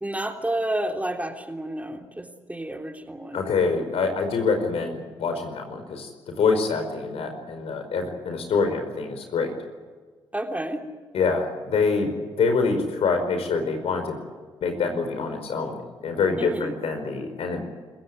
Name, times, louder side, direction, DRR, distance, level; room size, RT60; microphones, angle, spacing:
voice 1, 0.0-3.4 7.1-7.2 10.3-10.8 16.4-16.7, right 1 dB, 15° right, 4 dB, 3.4 m, -30 dB
voice 2, 3.3-9.5 11.1-14.2 14.6-17.6, left 4 dB, 75° left, 6 dB, 5.0 m, -25 dB
26.5 x 15.5 x 9.6 m, 1.5 s
supercardioid pair, 50°, 10 cm